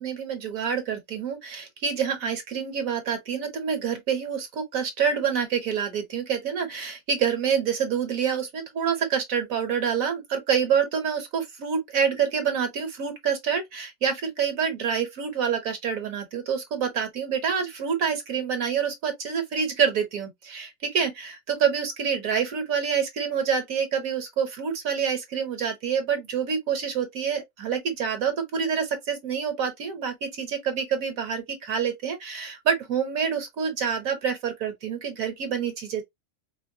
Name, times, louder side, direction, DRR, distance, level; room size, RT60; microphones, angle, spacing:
voice 1, 0.0-36.0, right 7 dB, 65° right, 1.2 m, -27 dB
4.4 x 2.1 x 2.6 m
omnidirectional pair, 1.6 m